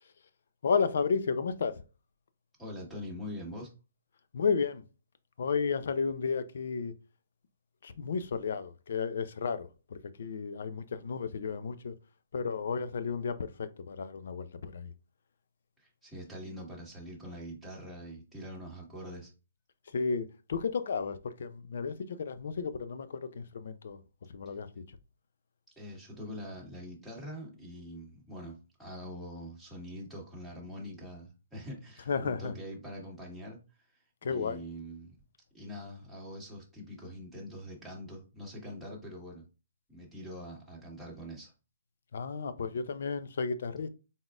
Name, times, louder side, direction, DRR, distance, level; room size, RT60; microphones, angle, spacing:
voice 1, 0.6-1.8 4.3-4.8 5.4-6.9 7.8-11.9 12.3-14.9 19.9-24.0 24.3-24.7 32.1-32.5 34.2-34.6 42.1-43.9, left 5 dB, 65° left, 0.5 m, -33 dB
voice 2, 2.6-3.7 15.8-19.3 24.4-24.5 25.8-33.6 34.2-35.1 35.5-39.5 39.9-41.5, equal, ahead, 1.5 m, -44 dB
4.0 x 3.7 x 2.4 m
hypercardioid pair, 145°, 0 cm